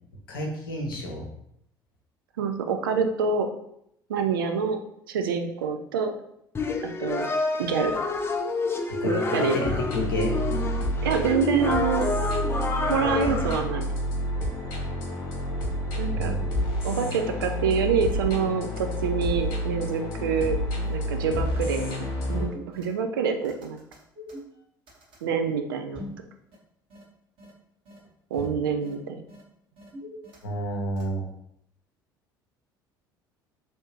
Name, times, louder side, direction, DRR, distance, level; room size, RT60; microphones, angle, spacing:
voice 1, 0.3-1.3 9.0-10.3 16.1-16.4 28.3-28.4 30.4-31.3, left 1 dB, 75° left, 0 dB, 0.7 m, -30 dB
voice 2, 2.4-3.5 4.1-4.8 5.1-6.1 6.8-7.3 7.6-8.0 9.0-9.6 11.0-12.1 12.7-13.9 15.9-16.3 16.8-20.6 20.8-22.0 22.3-23.8 25.2-26.1 28.3-29.2, right 6 dB, 75° right, 5 dB, 0.4 m, -26 dB
sound 1, 6.5-13.6, left 3 dB, 20° left, 0.5 m, -28 dB
sound 2, 9.6-22.5, equal, 60° left, 1.0 m, -29 dB
sound 3, 19.0-19.1 19.4-19.5 19.9-20.0 20.3-20.5 20.8-20.9 21.3-21.4 21.8-21.9 22.2-23.2 23.4-25.2 25.9-26.2 26.5-26.6 26.9-27.0 27.4-27.5 27.9-28.0 28.3-28.5 28.8-28.9 29.3-29.4 29.8-30.7 31.0-31.1, left 1 dB, 50° right, 1.5 m, -44 dB
3.2 x 2.7 x 3.0 m, 0.75 s
figure-of-eight pair, 60°, 12 cm